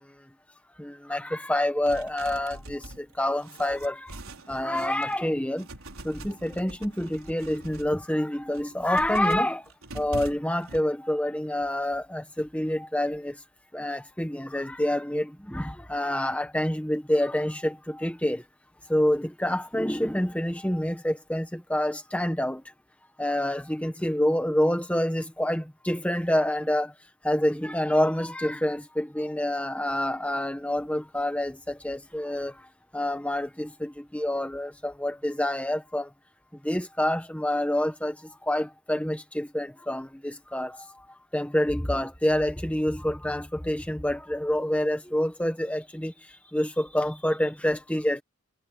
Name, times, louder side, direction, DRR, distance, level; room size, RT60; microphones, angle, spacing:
voice 1, 0.8-4.1 4.5-5.6 6.0-9.6 9.9-13.3 13.7-18.4 18.9-22.6 23.2-26.9 27.2-32.5 32.9-36.1 36.6-38.1 38.5-40.8 41.3-46.1 46.5-48.2, left 1 dB, 5° left, 1.2 m, -27 dB
sound 1, 1.8-5.2 5.6-7.9 8.4-10.8, right 1 dB, 70° right, 4.5 m, -43 dB
head